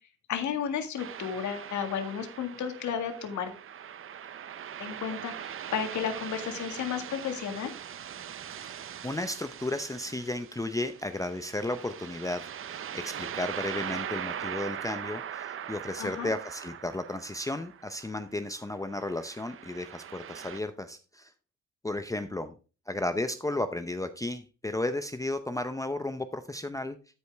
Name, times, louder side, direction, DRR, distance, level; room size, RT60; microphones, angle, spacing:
voice 1, 0.3-3.5 4.8-7.7 16.0-16.3, left 8 dB, 70° left, 5 dB, 1.9 m, -33 dB
sound 1, 1.0-18.3 18.9-20.6, right 9 dB, 45° right, 0.6 m, -41 dB
voice 2, 8.6-21.3 21.8-22.5 22.9-27.0, left 2 dB, 10° left, 9 dB, 0.6 m, -34 dB
12.5 x 5.2 x 3.4 m, 0.35 s
cardioid pair, 90°, 30 cm